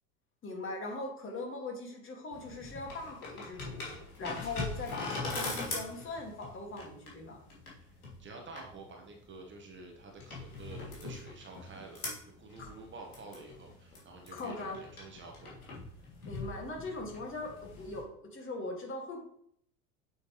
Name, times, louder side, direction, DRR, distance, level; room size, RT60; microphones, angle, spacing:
voice 1, 0.4-7.4 12.6-12.7 14.3-14.8 16.2-19.2, left 2 dB, 30° left, 1 dB, 2.1 m, -40 dB
sound 1, 2.3-18.0, left 3 dB, 75° left, 2.7 m, -42 dB
voice 2, 7.7-15.6, right 3 dB, 25° right, 1 dB, 1.3 m, -50 dB
8.5 x 6.4 x 3.1 m, 0.68 s
figure-of-eight pair, 75°, 44 cm